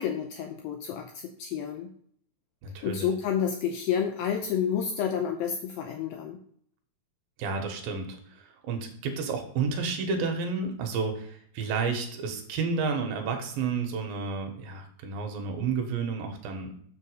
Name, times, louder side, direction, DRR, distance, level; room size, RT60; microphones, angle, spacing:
voice 1, 0.0-1.9 2.8-6.4, left 8 dB, 80° left, 4 dB, 2.1 m, -30 dB
voice 2, 2.6-3.1 7.4-16.7, right 5 dB, 70° right, 4 dB, 2.6 m, -31 dB
7.1 x 3.9 x 6.4 m, 0.62 s
omnidirectional pair, 4.7 m